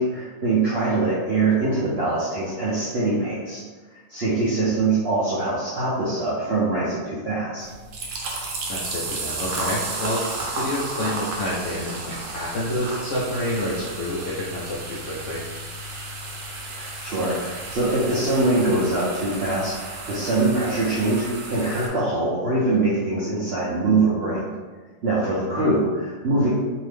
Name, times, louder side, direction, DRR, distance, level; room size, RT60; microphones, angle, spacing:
voice 1, 0.0-3.6 4.1-7.6 16.7-24.4 25.0-26.5, right 2 dB, 65° right, -9 dB, 0.6 m, -23 dB
sound 1, 7.6-21.9, right 2 dB, 85° right, 1.3 m, -33 dB
voice 2, 8.7-10.2 10.5-15.4 25.6-25.7, left 1 dB, 70° left, -7 dB, 0.7 m, -28 dB
2.8 x 2.6 x 3.3 m, 1.4 s
omnidirectional pair, 1.9 m